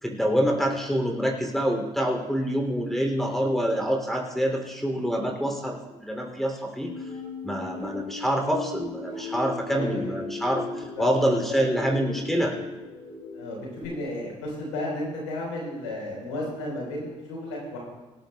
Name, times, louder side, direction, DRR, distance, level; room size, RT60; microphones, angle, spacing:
voice 1, 0.0-6.9 7.4-12.5, equal, ahead, 1 dB, 3.1 m, -26 dB
sound 1, 6.8-13.9, left 3 dB, 45° left, 5.0 m, -37 dB
voice 2, 9.7-10.2 11.0-11.6 12.0-12.2 13.3-17.8, left 1 dB, 90° left, -2 dB, 4.5 m, -33 dB
18.0 x 14.5 x 2.4 m, 1.2 s
hypercardioid pair, 50°, 15 cm